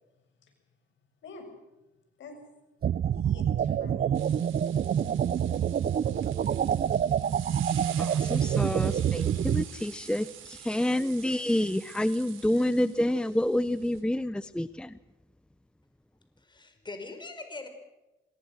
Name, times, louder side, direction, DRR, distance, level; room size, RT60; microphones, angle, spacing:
sound 1, 2.8-9.6, right 9 dB, 50° right, 0.9 m, -27 dB
voice 1, 3.1-4.4 8.5-8.6 10.7-10.8, left 3 dB, 70° left, 5 dB, 7.0 m, -48 dB
sound 2, 4.1-14.0, right 10 dB, 80° right, 4.8 m, -47 dB
voice 2, 8.0-15.0, left 1 dB, 5° left, 15 dB, 0.7 m, -28 dB
voice 3, 16.4-17.7, left 3 dB, 20° left, 7 dB, 4.9 m, -42 dB
26.0 x 21.5 x 6.4 m, 1.0 s
cardioid pair, 90°, 20 cm